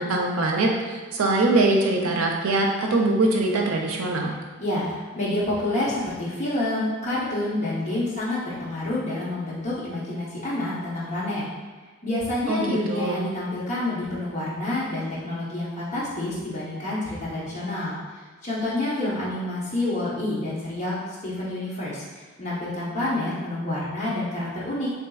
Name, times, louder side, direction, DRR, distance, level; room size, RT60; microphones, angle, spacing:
voice 1, 0.0-4.3 12.5-13.2, right 2 dB, 90° right, 1 dB, 0.5 m, -23 dB
voice 2, 4.6-11.4 12.0-18.0 18.4-24.9, left 1 dB, 35° left, -7 dB, 0.9 m, -28 dB
3.6 x 2.7 x 2.3 m, 1.4 s
head